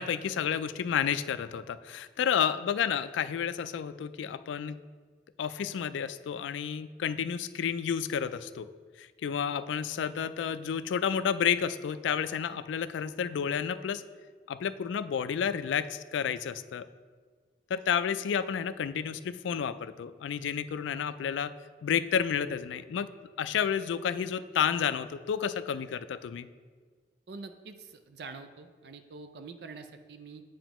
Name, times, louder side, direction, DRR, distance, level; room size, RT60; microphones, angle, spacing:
voice 1, 0.0-4.8 5.4-8.7 9.0-14.0 14.5-16.9 17.7-21.5 21.8-23.1 23.4-26.5, left 7 dB, 85° left, 13 dB, 0.3 m, -31 dB
voice 2, 27.3-30.4, right 4 dB, 60° right, 8 dB, 0.4 m, -45 dB
8.9 x 5.0 x 3.0 m, 1.6 s
head